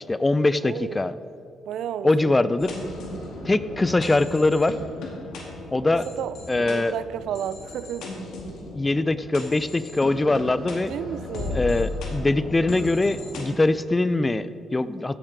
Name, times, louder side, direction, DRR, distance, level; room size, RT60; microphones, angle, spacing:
voice 1, 0.1-1.1 2.0-2.7 3.4-4.8 5.7-6.1 6.5-6.9 8.7-10.9 11.5-15.2, left 2 dB, 20° left, 15 dB, 0.4 m, -22 dB
voice 2, 0.6-1.0 1.7-2.5 6.1-8.1 10.7-11.6, right 9 dB, 75° right, 16 dB, 0.3 m, -32 dB
sound 1, 2.6-13.4, left 2 dB, 80° left, 2.1 m, -36 dB
15.5 x 7.3 x 4.6 m, 2.5 s
cardioid pair, 90°, 0 cm